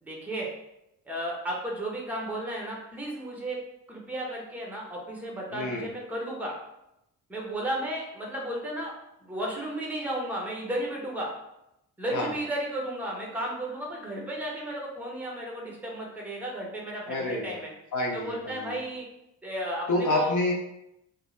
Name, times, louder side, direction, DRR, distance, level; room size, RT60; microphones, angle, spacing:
voice 1, 0.0-0.5 1.0-3.6 3.9-6.5 7.3-8.9 9.2-11.3 12.0-17.7 18.1-19.0 19.4-20.3, right 1 dB, 5° right, -2 dB, 0.8 m, -34 dB
voice 2, 5.5-5.9 12.1-12.3 17.1-17.6 17.9-18.8 19.9-20.5, left 2 dB, 40° left, -1 dB, 0.8 m, -28 dB
2.6 x 2.1 x 3.1 m, 0.86 s
figure-of-eight pair, 40°, 47 cm